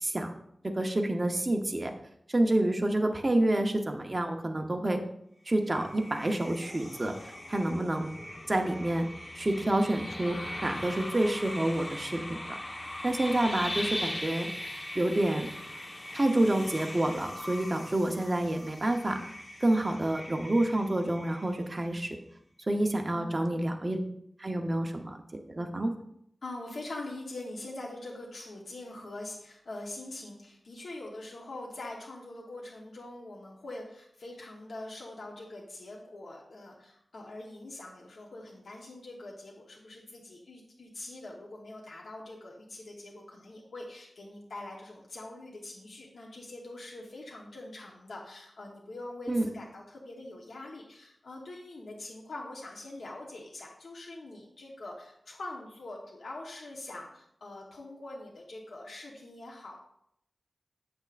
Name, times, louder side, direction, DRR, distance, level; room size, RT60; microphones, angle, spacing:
voice 1, 0.0-0.3 0.6-1.9 2.3-5.0 5.5-8.1 8.5-9.1 9.3-12.6 13.0-14.5 14.9-15.5 16.1-19.2 19.6-22.2 22.7-24.0 24.4-25.2 25.5-25.9 49.3-49.5, right 1 dB, 30° right, 4 dB, 0.8 m, -28 dB
sound 1, 5.5-21.8, left 1 dB, 40° left, 1.2 m, -40 dB
voice 2, 23.1-23.4 26.4-59.8, left 2 dB, 90° left, -2 dB, 1.0 m, -43 dB
8.1 x 6.2 x 2.5 m, 0.74 s
wide cardioid pair, 90°, 0 cm